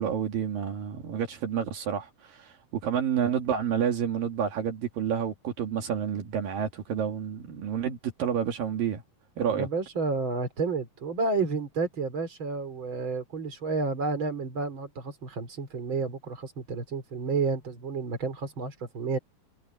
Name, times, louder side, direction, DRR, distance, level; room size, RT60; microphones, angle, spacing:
voice 1, 0.0-2.5 2.8-9.0 9.4-9.7, right 8 dB, 75° right, 3.9 m, -29 dB
voice 2, 9.5-19.2, right 4 dB, 35° right, 4.6 m, -31 dB
omnidirectional pair, 4.1 m